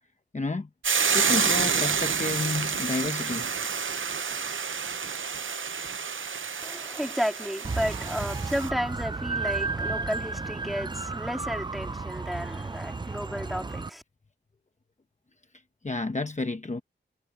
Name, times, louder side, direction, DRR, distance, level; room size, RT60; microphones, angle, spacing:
voice 1, 0.3-0.7 1.1-3.5 15.8-16.8, left 3 dB, 35° left, 0.9 m, -30 dB
Hiss / Boiling, 0.8-8.7, right 6 dB, 90° right, 0.7 m, -29 dB
voice 2, 6.6-14.0, equal, ahead, 3.5 m, -32 dB
sound 1, 7.6-13.9, right 3 dB, 25° right, 0.4 m, -33 dB
wide cardioid pair, 70°, 20 cm